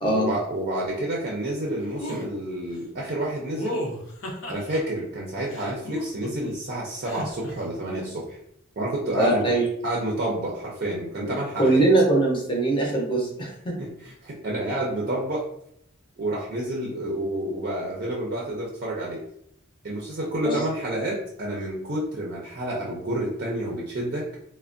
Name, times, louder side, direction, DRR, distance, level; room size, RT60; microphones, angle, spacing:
voice 1, 0.1-3.8 4.5-8.4 8.8-9.5 9.8-11.8 13.8-15.4 16.2-19.2 19.8-24.4, right 1 dB, 45° right, -3 dB, 0.5 m, -29 dB
sound 1, 2.0-2.2 3.6-4.8 5.5-6.5 7.0-7.5, left 1 dB, 65° left, 0.7 m, -33 dB
voice 2, 9.2-9.7 11.2-13.8 20.4-20.6, right 2 dB, 25° left, -2 dB, 0.6 m, -22 dB
3.3 x 2.1 x 2.5 m, 0.71 s
head